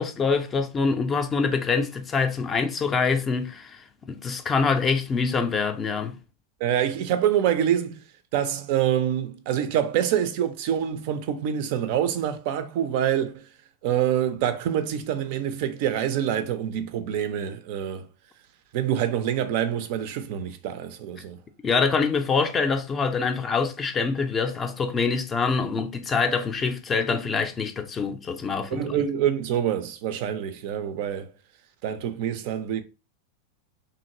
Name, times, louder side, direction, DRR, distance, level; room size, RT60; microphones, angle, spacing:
voice 1, 0.0-6.2 21.6-29.0, left 5 dB, 20° left, 0.4 m, -25 dB
voice 2, 6.6-8.0 8.3-13.4 13.8-18.1 18.7-21.4 28.7-31.3 31.8-32.8, right 10 dB, 45° right, 0.4 m, -26 dB
2.8 x 2.5 x 2.8 m
figure-of-eight pair, 90°, 0 cm